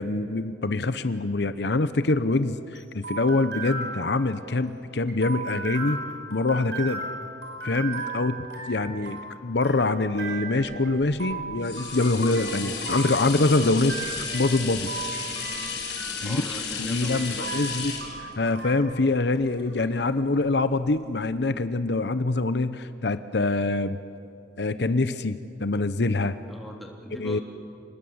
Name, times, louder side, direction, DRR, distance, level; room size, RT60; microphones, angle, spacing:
voice 1, 0.0-6.0 6.3-7.0 7.6-14.9 16.2-16.4 16.8-24.0 24.6-26.4 27.2-27.4, left 2 dB, 75° left, 12 dB, 0.8 m, -25 dB
sound 1, 2.1-18.7, right 4 dB, 90° right, 5.8 m, -37 dB
sound 2, 10.7-20.3 20.9-21.0, left 5 dB, 90° left, 5.5 m, -34 dB
voice 2, 16.2-17.5 26.5-27.4, equal, ahead, -1 dB, 3.1 m, -39 dB
27.0 x 20.0 x 8.0 m, 2.4 s
head